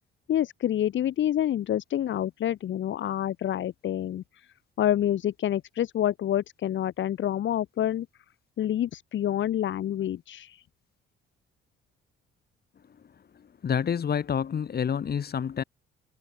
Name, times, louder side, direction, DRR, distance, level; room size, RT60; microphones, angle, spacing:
voice 1, 0.3-4.5 4.8-8.1 8.6-10.6, left 11 dB, 70° left, 3.7 m, -27 dB
voice 2, 13.4-15.6, left 7 dB, 50° left, 7.6 m, -28 dB
cardioid pair, 90°, 20 cm